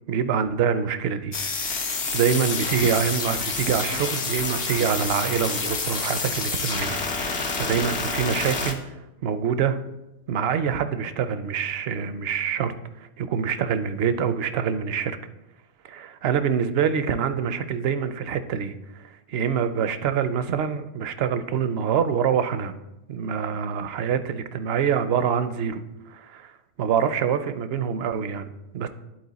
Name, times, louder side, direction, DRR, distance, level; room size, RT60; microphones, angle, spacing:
voice 1, 0.1-1.4 2.1-7.0 7.5-9.0 9.2-9.8 10.3-12.7 13.2-15.2 15.8-22.8 23.1-25.8 26.1-26.5 26.8-28.9, right 7 dB, 70° right, 11 dB, 0.8 m, -25 dB
sound 1, 1.3-8.7, left 4 dB, 75° left, 1.3 m, -28 dB
11.0 x 4.3 x 4.0 m, 0.93 s
omnidirectional pair, 1.1 m